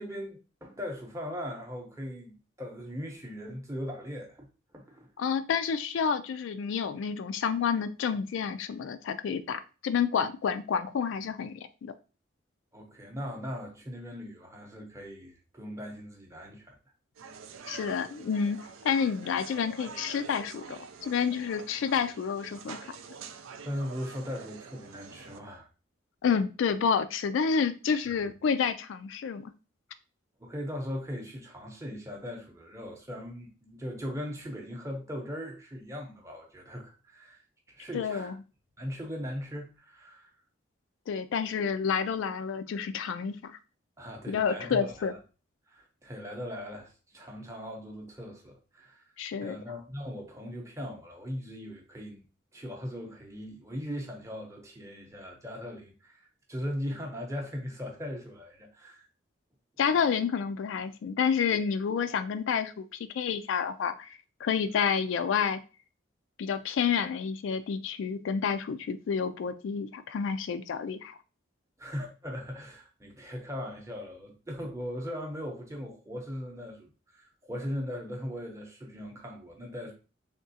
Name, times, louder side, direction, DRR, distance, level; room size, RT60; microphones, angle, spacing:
voice 1, 0.0-4.5 4.7-5.1 12.7-16.8 23.6-25.7 28.1-28.2 30.4-37.4 37.7-38.3 38.8-40.3 44.0-45.1 45.7-49.1 49.4-52.2 52.5-59.1 71.8-79.9, equal, 15° right, 0.7 m, -39 dB
voice 2, 5.2-11.9 17.7-18.6 18.8-22.8 26.2-29.5 37.9-38.3 41.1-43.5 44.3-45.1 49.2-49.6 59.8-62.9 63.1-65.6 66.4-71.2, left 6 dB, 75° left, 0.3 m, -29 dB
sound 1, 17.2-25.4, right 5 dB, 85° right, 0.4 m, -46 dB
3.6 x 2.9 x 2.7 m
head